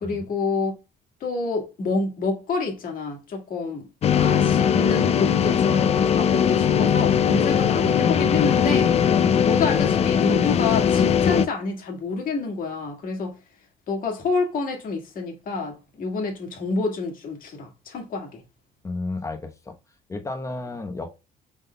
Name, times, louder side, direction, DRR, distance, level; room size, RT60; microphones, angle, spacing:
voice 1, 0.0-0.7 1.2-3.9 4.1-8.9 9.4-13.3 13.9-18.4, left 4 dB, 55° left, 1.6 m, -28 dB
sound 1, 4.0-11.5, left 8 dB, 40° left, 0.4 m, -20 dB
voice 2, 18.8-19.8 20.1-21.1, left 3 dB, 20° left, 0.9 m, -33 dB
5.2 x 3.8 x 2.2 m
cardioid pair, 110°, 17 cm